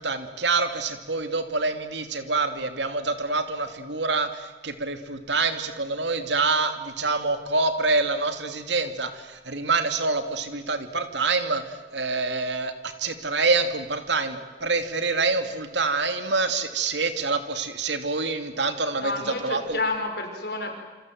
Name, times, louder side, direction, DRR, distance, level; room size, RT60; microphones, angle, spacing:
voice 1, 0.0-19.8, right 3 dB, 85° right, 8 dB, 2.7 m, -26 dB
voice 2, 19.0-20.7, left 2 dB, 60° left, 4 dB, 5.9 m, -29 dB
27.0 x 26.5 x 7.9 m, 1.3 s
head